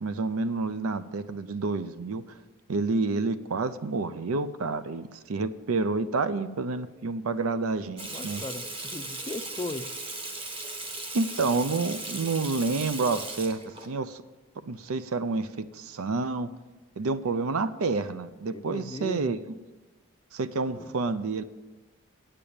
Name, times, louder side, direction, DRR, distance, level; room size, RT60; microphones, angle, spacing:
voice 1, 0.0-2.2 2.7-8.4 11.1-13.6 13.9-14.2 14.7-16.5 17.0-19.4 20.3-21.4, right 3 dB, 85° right, 14 dB, 0.5 m, -29 dB
Water tap faucet / Sink (filling or washing), 8.0-13.9, right 2 dB, 25° right, 1.1 m, -37 dB
voice 2, 8.1-9.9 18.5-19.3 20.7-20.9, left 2 dB, 20° left, 10 dB, 0.4 m, -38 dB
9.0 x 6.8 x 8.7 m, 1.2 s
head